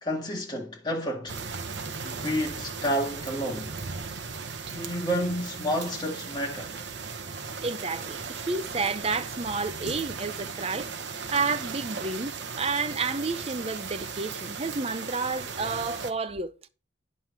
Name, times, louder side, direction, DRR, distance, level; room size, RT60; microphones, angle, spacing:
voice 1, 0.0-1.4 2.0-3.7 4.7-6.8, equal, 25° left, 1.9 m, -30 dB
sound 1, 1.3-16.1, right 5 dB, 65° right, 1.0 m, -37 dB
voice 2, 7.6-16.5, right 4 dB, 30° right, 0.6 m, -31 dB
9.7 x 5.5 x 4.3 m
head